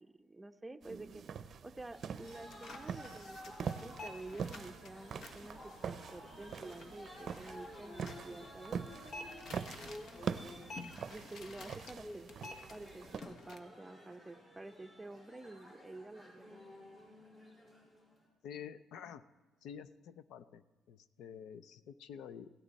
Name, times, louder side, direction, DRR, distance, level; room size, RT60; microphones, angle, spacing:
voice 1, 0.0-8.8 11.1-12.3 12.7-16.6, right 2 dB, 15° right, 10 dB, 0.7 m, -50 dB
sound 1, 0.8-13.2, right 7 dB, 60° right, 0.6 m, -44 dB
sound 2, 1.9-18.3, left 1 dB, 40° left, 5.9 m, -54 dB
sound 3, 2.2-13.6, left 2 dB, 60° left, 1.3 m, -52 dB
voice 2, 18.4-19.2 19.6-22.5, left 8 dB, 85° left, 15 dB, 0.5 m, -49 dB
16.5 x 13.0 x 4.1 m, 1.3 s
cardioid pair, 90°, 0 cm